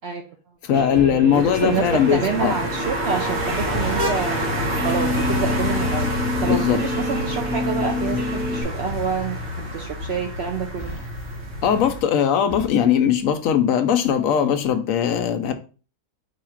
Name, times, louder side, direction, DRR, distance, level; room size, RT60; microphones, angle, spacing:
voice 1, 0.0-0.3 0.9-1.8 2.1-4.4 4.8-6.1 6.4-10.9, right 6 dB, 65° right, 0.6 m, -27 dB
Truck, 0.6-1.6 3.4-4.3 5.9-6.9 8.5-9.6 10.7-11.6 12.5-13.3, equal, 35° left, 1.5 m, -40 dB
voice 2, 0.7-2.5 6.4-6.8 11.6-15.5, left 9 dB, 70° left, 0.9 m, -20 dB
Guitar, 0.7-8.6, left 2 dB, 10° right, 1.0 m, -28 dB
sound 1, 1.3-12.0, equal, 50° right, 1.2 m, -28 dB
4.8 x 2.4 x 4.3 m
omnidirectional pair, 1.5 m